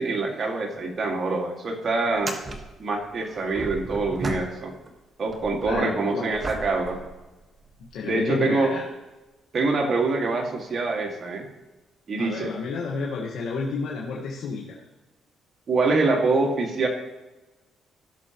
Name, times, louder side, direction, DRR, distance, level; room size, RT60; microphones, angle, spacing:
voice 1, 0.0-2.4 2.8-4.7 5.2-7.0 8.0-8.7 9.5-11.5 12.1-12.5 15.7-16.9, right 3 dB, 45° right, 2 dB, 2.0 m, -25 dB
sound 1, 0.7-0.9 1.2-1.3 2.1-4.9 5.3-7.9 8.6-8.7 12.9-13.0 14.4-14.5, right 2 dB, 25° right, 1.4 m, -36 dB
voice 2, 5.6-6.4 7.8-8.8 12.2-14.7, left 4 dB, 80° left, -3 dB, 1.5 m, -31 dB
16.5 x 6.4 x 3.0 m, 1.1 s
cardioid pair, 90°, 0 cm